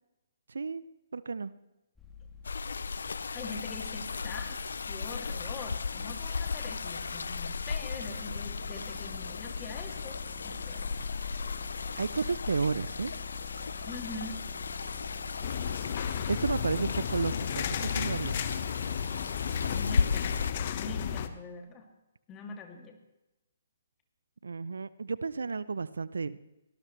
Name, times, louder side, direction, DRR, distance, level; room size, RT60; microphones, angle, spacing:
voice 1, 0.5-0.8 1.1-1.5 12.0-13.1 16.3-18.4 24.4-26.4, right 4 dB, 70° right, 17 dB, 0.6 m, -32 dB
sound 1, 2.0-15.5, left 6 dB, 5° left, 2.8 m, -45 dB
sound 2, 2.4-20.5, left 5 dB, 70° left, 0.6 m, -36 dB
voice 2, 3.3-4.6 4.9-10.2 10.4-10.9 13.9-14.4 19.7-21.9 22.3-23.0, left 3 dB, 20° left, 2 dB, 2.6 m, -43 dB
sound 3, 15.4-21.3, left 8 dB, 45° left, 1.2 m, -33 dB
23.5 x 18.5 x 3.3 m, 0.96 s
figure-of-eight pair, 130°, 0 cm